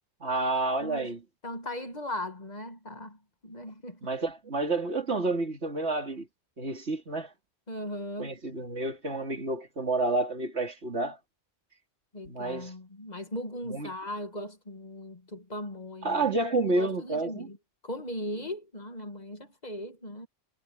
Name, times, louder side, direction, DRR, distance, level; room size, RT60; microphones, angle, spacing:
voice 1, 0.2-1.2 4.0-6.3 6.6-7.3 8.2-11.2 12.2-12.7 13.6-13.9 16.0-17.5, right 2 dB, 75° right, 3.2 m, -29 dB
voice 2, 0.8-1.1 1.4-4.1 7.7-8.4 12.1-16.3 16.7-17.6 17.8-20.3, left 1 dB, 40° left, 1.9 m, -38 dB
omnidirectional pair, 1.1 m